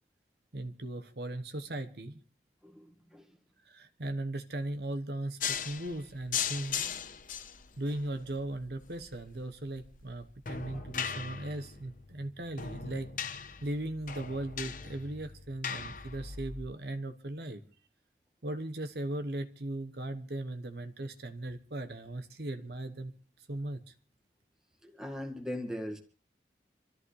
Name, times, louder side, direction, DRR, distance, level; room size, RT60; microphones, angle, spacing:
voice 1, 0.5-2.2 3.6-7.0 7.8-13.1 13.4-17.6 18.4-23.1 23.4-23.9, right 1 dB, 60° right, 1.1 m, -38 dB
voice 2, 2.6-3.3 10.7-10.8 24.8-26.0, left 1 dB, 5° right, 1.8 m, -40 dB
sound 1, 5.4-16.7, left 7 dB, 45° left, 1.0 m, -39 dB
26.0 x 14.0 x 3.2 m
head